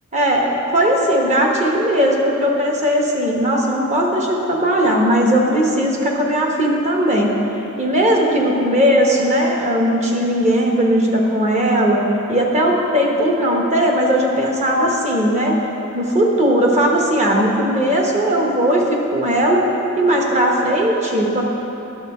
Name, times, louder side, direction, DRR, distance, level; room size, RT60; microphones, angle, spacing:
voice 1, 0.1-7.3 7.8-12.0 12.3-15.6 15.9-19.6 20.0-21.4, equal, 30° right, -1 dB, 1.0 m, -18 dB
11.0 x 6.3 x 4.3 m, 3.0 s
head